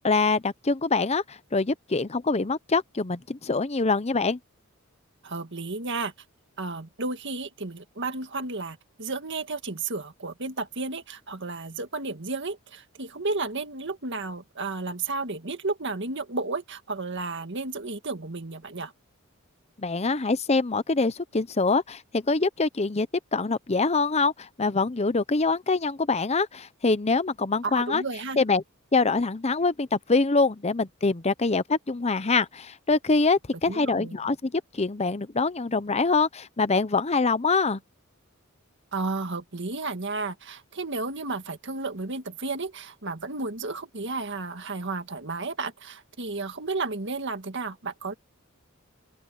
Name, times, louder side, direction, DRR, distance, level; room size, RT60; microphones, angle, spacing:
voice 1, 0.0-4.4 19.8-23.1 23.3-28.0 28.4-28.6 28.9-37.8, left 3 dB, 30° left, 0.8 m, -24 dB
voice 2, 5.2-6.1 6.6-18.9 27.6-28.4 33.7-34.2 38.9-48.1, right 3 dB, 60° right, 1.9 m, -32 dB
open air
head